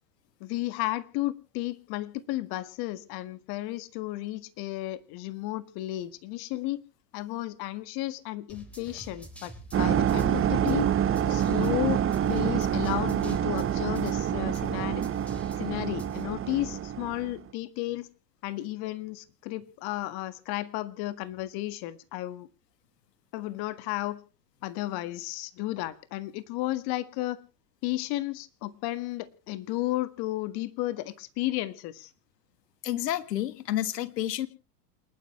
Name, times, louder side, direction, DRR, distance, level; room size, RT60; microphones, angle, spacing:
voice 1, 0.4-6.8 7.1-9.5 9.8-10.9 11.2-12.0 12.3-15.0 15.6-18.1 18.4-22.5 23.3-24.2 24.6-27.4 27.8-32.1, left 16 dB, 50° left, 13 dB, 1.8 m, -33 dB
sound 1, 8.5-16.2, right 1 dB, 5° left, 4.0 m, -46 dB
sound 2, 9.7-17.3, right 9 dB, 25° right, 1.1 m, -27 dB
voice 2, 32.8-34.5, left 13 dB, 85° left, 13 dB, 1.7 m, -30 dB
28.5 x 10.0 x 3.2 m, 0.35 s
hypercardioid pair, 100°, 48 cm